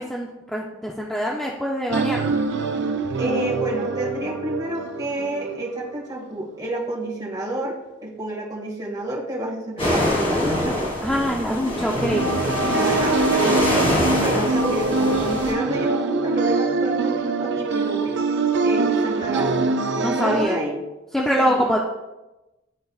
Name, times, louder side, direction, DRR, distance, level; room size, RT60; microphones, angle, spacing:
voice 1, 0.0-2.3 11.0-12.3 20.0-20.6 21.1-21.8, equal, ahead, -2 dB, 0.5 m, -24 dB
sound 1, 1.9-6.0 11.9-20.4, right 3 dB, 65° right, 0.5 m, -24 dB
voice 2, 3.2-10.8 12.6-13.9 14.2-18.2 18.6-19.7 20.1-20.8 21.3-21.7, right 1 dB, 20° right, -5 dB, 1.7 m, -29 dB
sound 2, 9.8-15.5, left 1 dB, 30° left, 2.0 m, -24 dB
12.0 x 4.0 x 2.3 m, 1.0 s
head